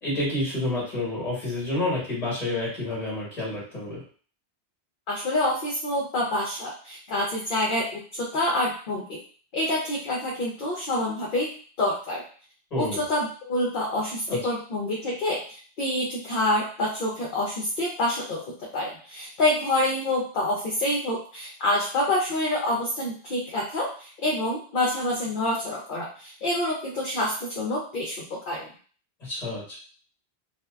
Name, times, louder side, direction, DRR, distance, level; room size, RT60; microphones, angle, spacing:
voice 1, 0.0-4.0 12.7-13.0 14.3-14.4 29.2-29.8, left 2 dB, 40° left, -5 dB, 1.2 m, -29 dB
voice 2, 5.1-7.8 8.1-9.2 9.5-11.5 11.8-12.2 12.8-18.4 18.7-28.7, left 1 dB, 60° left, -4 dB, 0.7 m, -27 dB
2.6 x 2.1 x 2.2 m, 0.42 s
omnidirectional pair, 1.1 m